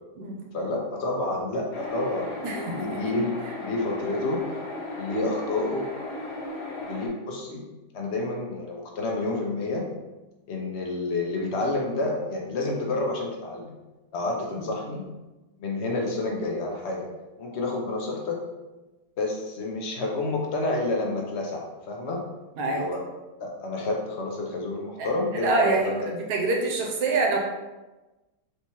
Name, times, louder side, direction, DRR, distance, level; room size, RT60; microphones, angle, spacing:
voice 1, 0.5-4.4 5.0-5.9 6.9-7.6 7.9-9.9 10.5-13.7 14.1-15.0 15.6-17.1 17.4-18.4 19.2-22.2 22.7-23.0 23.4-26.0, left 2 dB, 50° left, 0 dB, 0.9 m, -29 dB
sound 1, 1.7-7.1, left 1 dB, 70° left, 1.6 m, -36 dB
voice 2, 2.4-3.0 14.5-14.7 22.6-22.8 25.0-25.1 25.3-27.4, right 3 dB, 75° right, 0 dB, 1.2 m, -26 dB
4.2 x 3.4 x 3.0 m, 1.1 s
omnidirectional pair, 1.8 m